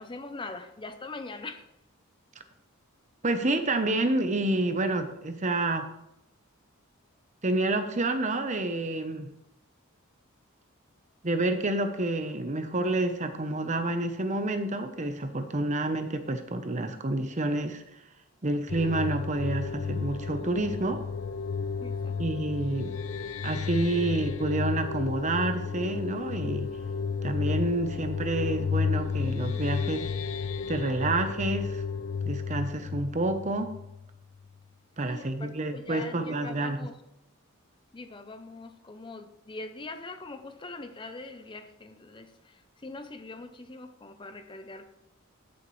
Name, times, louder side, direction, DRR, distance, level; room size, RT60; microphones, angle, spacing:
voice 1, 0.0-1.7 21.8-22.2 35.0-37.0 37.9-44.9, left 3 dB, 20° left, 9 dB, 0.5 m, -42 dB
voice 2, 3.2-5.9 7.4-9.3 11.2-17.8 18.4-21.0 22.2-23.0 23.4-26.7 27.2-30.1 30.7-31.8 32.2-33.8 35.0-36.9, right 2 dB, 35° right, 8 dB, 0.8 m, -29 dB
sound 1, 18.7-34.2, left 5 dB, 70° left, 0.6 m, -32 dB
15.5 x 6.9 x 3.2 m, 0.86 s
head